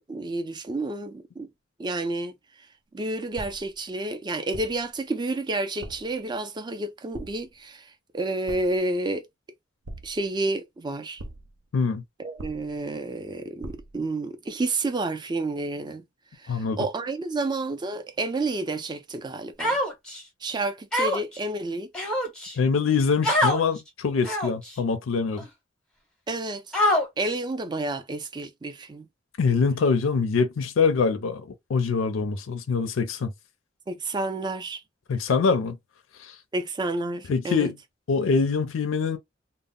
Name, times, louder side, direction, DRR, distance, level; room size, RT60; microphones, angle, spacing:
voice 1, 0.1-1.5 1.8-2.3 2.9-7.8 8.1-9.2 10.0-11.2 12.2-16.0 16.4-19.8 20.4-21.9 26.3-26.6 27.2-29.1 33.9-34.8 36.5-37.7, right 2 dB, 20° right, 0.4 m, -30 dB
sound 1, 3.4-3.8 4.5-4.9 5.8-6.2 7.1-7.6 8.5-8.9 9.8-10.4 11.2-11.6 12.4-12.9 13.6-14.0, right 1 dB, 80° right, 0.5 m, -41 dB
voice 2, 11.7-12.0 16.5-16.8 22.6-25.4 29.4-33.3 35.1-35.8 36.2-36.3 37.3-37.8 38.1-39.2, left 5 dB, 85° left, 0.4 m, -24 dB
Human voice, 19.6-20.2 20.9-21.4 21.9-22.5 23.2-23.6 24.2-24.7 25.4-25.5 26.7-27.3, left 1 dB, 5° left, 0.7 m, -24 dB
2.0 x 2.0 x 3.5 m
head